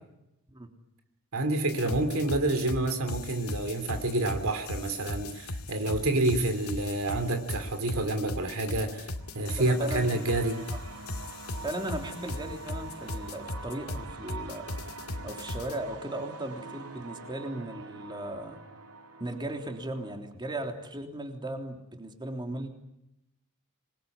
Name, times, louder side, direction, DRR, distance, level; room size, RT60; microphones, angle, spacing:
voice 1, 1.3-10.7, right 2 dB, 70° right, 2.9 m, -28 dB
sound 1, 1.7-15.8, left 2 dB, 80° left, 2.3 m, -38 dB
sound 2, 9.1-20.2, right 3 dB, 85° right, 3.6 m, -45 dB
voice 2, 9.6-10.1 10.7-10.8 11.6-14.7 15.2-18.6 19.2-22.7, right 1 dB, 20° right, 3.4 m, -37 dB
26.5 x 21.5 x 9.7 m
head